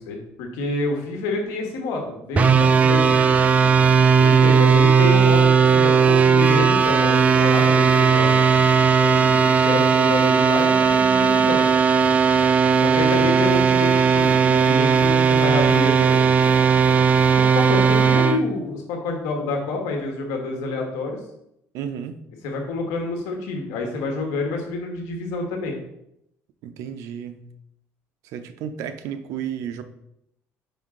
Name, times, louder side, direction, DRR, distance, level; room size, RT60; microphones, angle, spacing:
voice 1, 0.0-3.2 4.2-8.4 9.0-11.6 12.8-16.3 17.3-21.2 22.4-25.8, left 3 dB, 90° left, 2 dB, 1.3 m, -28 dB
sound 1, 2.4-18.4, right 6 dB, 25° right, 0.4 m, -17 dB
voice 2, 21.7-22.2 26.6-27.5 28.2-29.8, right 8 dB, 70° right, 9 dB, 0.6 m, -32 dB
5.5 x 5.4 x 3.7 m, 0.80 s
cardioid pair, 125°, 5 cm